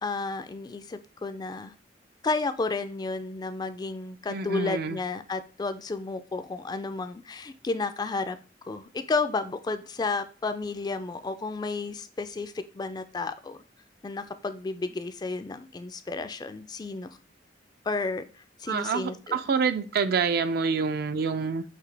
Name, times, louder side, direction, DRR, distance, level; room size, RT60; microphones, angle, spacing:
voice 1, 0.0-1.7 2.2-8.4 8.7-13.6 14.0-17.1 17.9-18.3 18.6-19.4, left 3 dB, 25° left, 0.3 m, -32 dB
voice 2, 4.3-5.0 18.7-21.6, right 5 dB, 60° right, 0.4 m, -27 dB
5.9 x 2.8 x 3.2 m
head